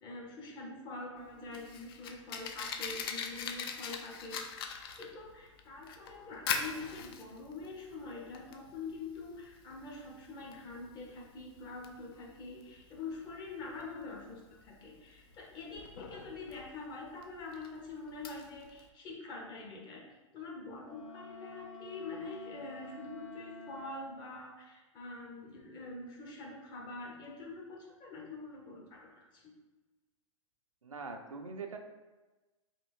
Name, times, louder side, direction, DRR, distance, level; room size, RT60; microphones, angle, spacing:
voice 1, 0.0-20.0 20.3-29.5, left 3 dB, 25° left, -1 dB, 0.7 m, -45 dB
Fire, 1.2-18.9, left 6 dB, 45° left, 0.4 m, -43 dB
Wind instrument woodwind instrument, 20.8-24.3, left 2 dB, 80° left, 0.9 m, -50 dB
voice 2, 30.8-31.8, right 4 dB, 85° right, 4 dB, 0.5 m, -42 dB
3.4 x 2.6 x 2.9 m, 1.2 s
figure-of-eight pair, 115°, 17 cm